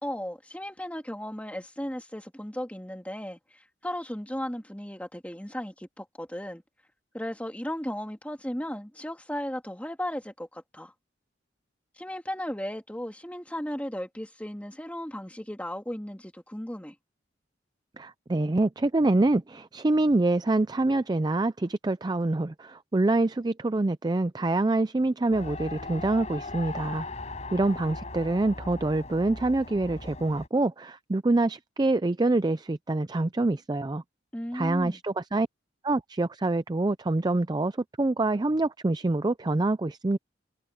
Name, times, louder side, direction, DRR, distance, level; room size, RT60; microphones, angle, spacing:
voice 1, 0.0-6.6 7.1-10.9 12.0-16.9 34.3-35.0, equal, 10° left, 2.3 m, -35 dB
voice 2, 18.0-27.1 27.5-34.0 34.5-35.5 35.8-40.2, right 2 dB, 20° right, 0.4 m, -26 dB
Race car auto racing, 25.3-30.5, left 3 dB, 40° left, 5.5 m, -39 dB
head